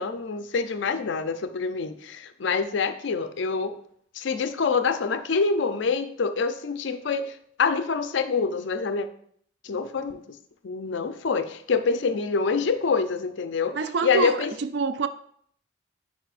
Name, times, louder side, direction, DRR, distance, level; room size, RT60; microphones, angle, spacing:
voice 1, 0.0-3.8 4.2-9.1 9.6-10.2 10.6-14.5, left 5 dB, 70° left, 0.5 m, -26 dB
voice 2, 13.7-15.1, right 4 dB, 55° right, 0.4 m, -27 dB
9.3 x 4.3 x 2.4 m
head